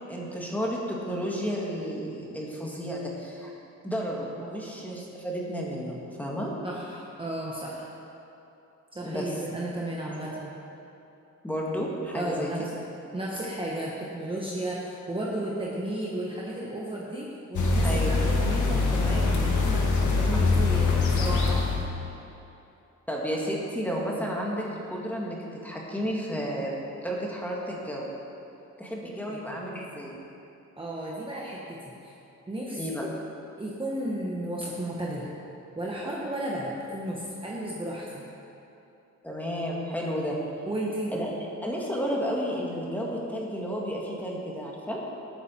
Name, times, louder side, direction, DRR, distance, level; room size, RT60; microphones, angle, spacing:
voice 1, 0.1-3.5 3.8-6.5 9.0-9.3 10.1-10.3 11.4-12.5 17.8-18.2 20.3-20.4 23.1-28.1 28.8-30.2 32.8-33.1 39.2-40.4 41.1-41.3 41.6-45.0, equal, 5° left, -3 dB, 1.9 m, -32 dB
voice 2, 6.6-7.9 8.9-10.6 12.1-12.6 13.1-19.9 20.2-21.8 29.3-29.6 30.8-32.1 32.5-33.1 33.6-35.3 35.7-38.2 40.6-41.1, right 1 dB, 15° right, -4 dB, 1.3 m, -34 dB
sound 1, 17.5-21.9, left 3 dB, 70° left, 1.7 m, -23 dB
18.0 x 8.9 x 4.5 m, 2.8 s
wide cardioid pair, 155°, 31 cm